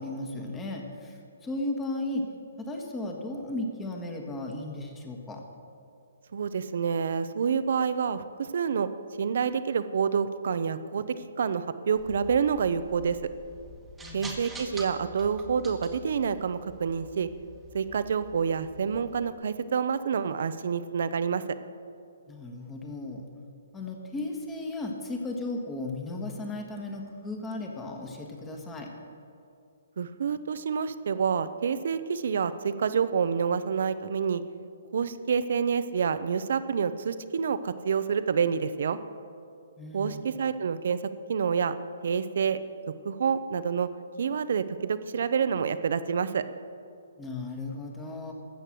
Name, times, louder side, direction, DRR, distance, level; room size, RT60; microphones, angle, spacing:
voice 1, 0.0-2.2 2.6-5.4 14.0-14.4 22.3-23.2 23.7-28.9 39.8-40.3 47.2-48.3, left 2 dB, 10° left, 2 dB, 1.5 m, -35 dB
voice 2, 6.3-8.9 9.2-11.0 11.4-13.2 14.1-17.3 17.7-21.4 30.0-34.4 34.9-39.0 39.9-41.0 41.3-41.7 42.0-42.6 43.0-43.9 44.2-46.4, right 6 dB, 65° right, 13 dB, 0.7 m, -28 dB
sound 1, 11.9-19.3, right 1 dB, 5° right, 1.4 m, -46 dB
13.5 x 8.0 x 7.7 m, 2.4 s
hypercardioid pair, 155°, 0 cm